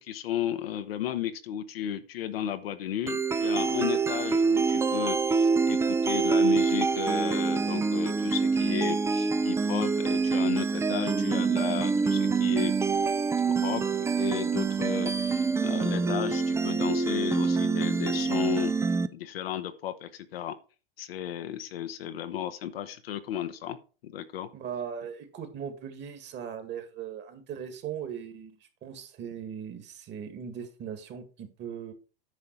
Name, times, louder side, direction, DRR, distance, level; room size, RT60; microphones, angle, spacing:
voice 1, 0.0-12.7 13.6-18.7 19.1-20.5 21.0-23.8 24.0-24.5, left 11 dB, 80° left, 9 dB, 1.1 m, -34 dB
sound 1, 3.1-19.1, right 4 dB, 10° right, 0.5 m, -26 dB
voice 2, 24.5-28.6 28.8-31.9, right 8 dB, 40° right, 8 dB, 2.2 m, -39 dB
9.7 x 5.5 x 4.8 m, 0.35 s
hypercardioid pair, 100°, 29 cm